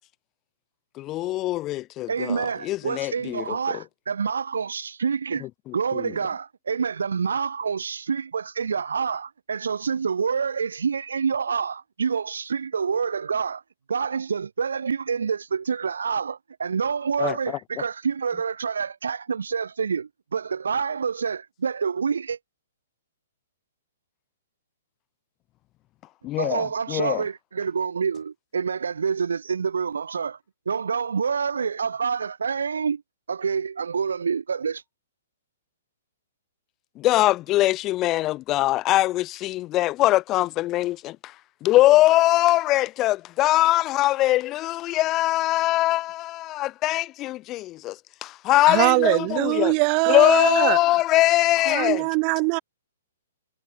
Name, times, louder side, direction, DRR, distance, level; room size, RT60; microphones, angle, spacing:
voice 1, 1.0-3.6 5.4-6.1 17.2-17.4 26.2-27.2 37.0-41.2 41.6-49.7 50.1-52.0, left 16 dB, 25° left, 4.2 m, -22 dB
voice 2, 2.1-5.5 5.7-13.6 13.9-22.4 26.4-30.4 30.7-33.0 33.3-34.8, right 6 dB, 85° right, 1.8 m, -27 dB
voice 3, 48.7-50.8 51.7-52.6, right 40 dB or more, 35° right, 6.7 m, -22 dB
hypercardioid pair, 140°, 0 cm